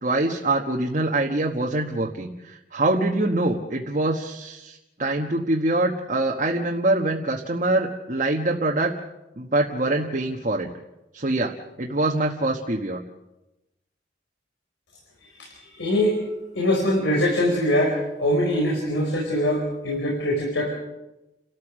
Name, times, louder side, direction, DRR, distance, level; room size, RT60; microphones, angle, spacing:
voice 1, 0.0-8.9 9.4-10.7 11.1-11.5 11.8-13.0, right 2 dB, 40° right, 0 dB, 1.3 m, -24 dB
voice 2, 15.3-20.8, left 1 dB, 75° left, -1 dB, 4.7 m, -23 dB
30.0 x 13.5 x 6.4 m, 0.97 s
head